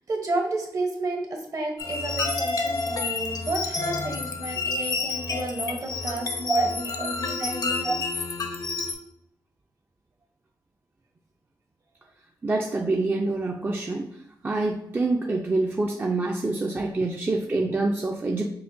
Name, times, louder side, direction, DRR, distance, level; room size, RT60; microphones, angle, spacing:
voice 1, 0.1-6.7 7.0-8.0, right 2 dB, 50° right, 2 dB, 0.8 m, -31 dB
sound 1, 1.8-8.9, left 4 dB, 50° left, 0.6 m, -29 dB
voice 2, 6.5-7.1 7.8-7.9 12.4-14.1 14.4-18.5, right 2 dB, 25° right, 1 dB, 0.4 m, -26 dB
5.7 x 2.2 x 2.6 m, 0.75 s
cardioid pair, 75°, 8 cm